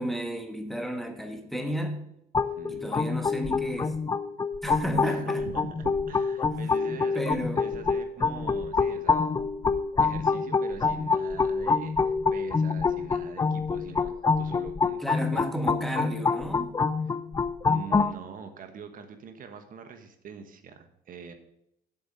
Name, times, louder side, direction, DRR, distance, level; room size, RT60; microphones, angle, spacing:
voice 1, 0.0-2.1 2.7-3.9 4.6-5.5 7.1-7.6 15.0-16.8, equal, ahead, 5 dB, 1.3 m, -32 dB
sound 1, 2.3-18.1, left 4 dB, 20° left, 0.5 m, -26 dB
voice 2, 2.4-2.9 5.0-9.3 10.0-15.0 15.3-15.5 17.0-17.2 17.7-21.3, right 6 dB, 55° right, 8 dB, 1.2 m, -44 dB
8.0 x 6.9 x 6.7 m, 0.82 s
cardioid pair, 110°, 17 cm